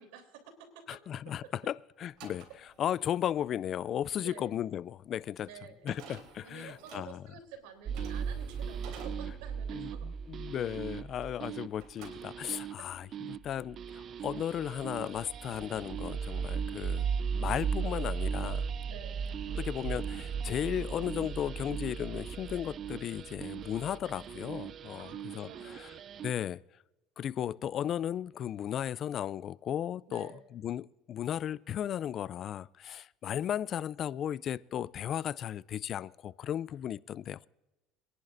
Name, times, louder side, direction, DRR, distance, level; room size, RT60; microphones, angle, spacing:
voice 1, 0.0-0.8 4.1-4.6 5.4-5.9 6.4-10.1 18.9-19.3 25.0-26.0 30.1-30.4, right 7 dB, 85° right, 3.3 m, -50 dB
voice 2, 0.9-2.5 2.8-5.5 5.8-7.2 9.7-17.1 17.3-18.7 19.6-25.1 25.3-25.9 26.2-26.6 27.2-37.5, left 10 dB, 45° left, 0.4 m, -35 dB
sound 1, 2.0-11.5 11.8-12.8, right 5 dB, 70° right, 3.4 m, -54 dB
sound 2, 7.9-26.3, right 6 dB, 45° right, 0.4 m, -37 dB
26.0 x 11.0 x 2.6 m
supercardioid pair, 110°, 0 cm